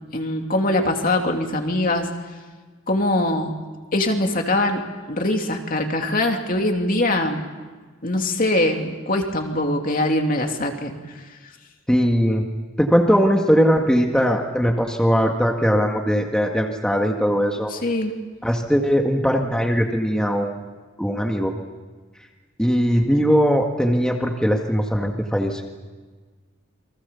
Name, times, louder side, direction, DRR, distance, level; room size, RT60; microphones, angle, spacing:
voice 1, 0.1-2.1 2.9-3.5 3.9-4.8 5.1-7.4 8.0-10.9 17.7-18.1, left 1 dB, 40° left, 3 dB, 2.8 m, -22 dB
voice 2, 11.9-12.4 12.8-17.7 18.4-20.5 21.0-21.5 22.6-25.6, equal, 5° left, 1 dB, 1.8 m, -20 dB
29.0 x 24.0 x 7.1 m, 1.4 s
head